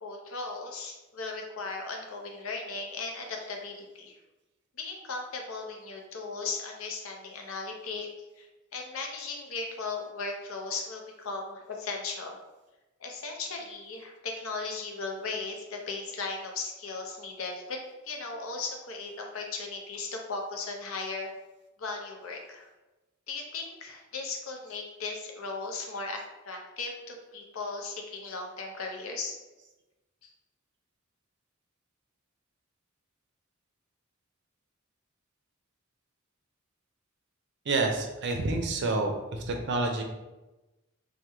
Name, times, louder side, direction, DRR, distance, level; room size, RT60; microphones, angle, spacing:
voice 1, 0.0-4.2 4.8-8.1 8.4-12.4 13.0-17.8 18.0-21.3 21.8-22.7 23.3-29.4 30.2-30.3, left 3 dB, 70° left, 2 dB, 0.6 m, -37 dB
voice 2, 37.7-40.0, right 3 dB, 55° right, 3 dB, 0.5 m, -28 dB
3.0 x 2.2 x 3.3 m, 1.1 s
head